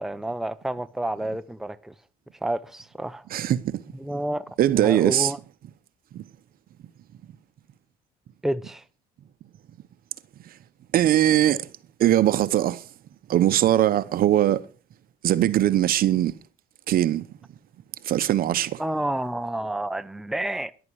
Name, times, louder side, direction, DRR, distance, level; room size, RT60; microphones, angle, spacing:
voice 1, 0.0-1.9 2.4-3.2 3.9-4.4 4.8-5.4 8.4-8.8 18.8-20.7, right 1 dB, ahead, 0.7 m, -29 dB
voice 2, 3.3-3.8 4.6-5.3 6.1-6.2 10.9-11.7 12.0-12.8 13.3-14.7 15.2-16.3 16.9-17.2 18.0-18.8, right 12 dB, 60° right, 0.9 m, -21 dB
14.0 x 11.0 x 4.7 m
cardioid pair, 110°, 17 cm